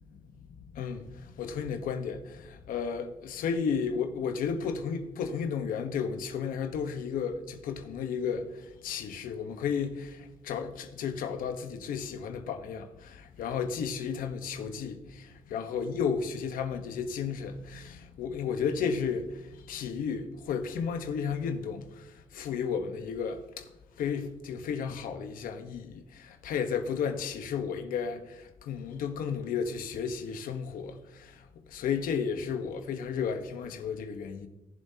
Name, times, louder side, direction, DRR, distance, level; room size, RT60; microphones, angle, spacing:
voice 1, 0.7-8.5 8.8-19.3 19.7-22.0 22.3-23.6 24.0-31.3 31.7-34.5, left 6 dB, 85° left, 1.2 m, -33 dB
19.0 x 7.3 x 2.9 m
cardioid pair, 100°, 14 cm